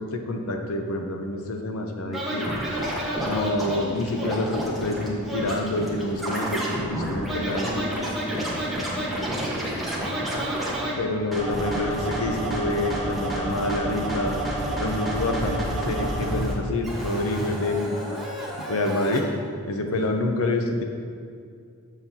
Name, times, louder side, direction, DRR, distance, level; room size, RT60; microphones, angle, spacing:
voice 1, 0.0-2.5 3.2-7.9 11.0-14.4 14.8-17.9 18.7-19.2 19.7-20.8, left 2 dB, 65° left, 3 dB, 0.7 m, -27 dB
Scratching (performance technique), 2.1-10.9 11.3-16.5 16.8-19.2, right 1 dB, ahead, 1.2 m, -29 dB
voice 2, 7.6-10.1 20.0-20.1, right 1 dB, 35° right, -3 dB, 1.2 m, -38 dB
8.1 x 7.2 x 2.8 m, 2.3 s
head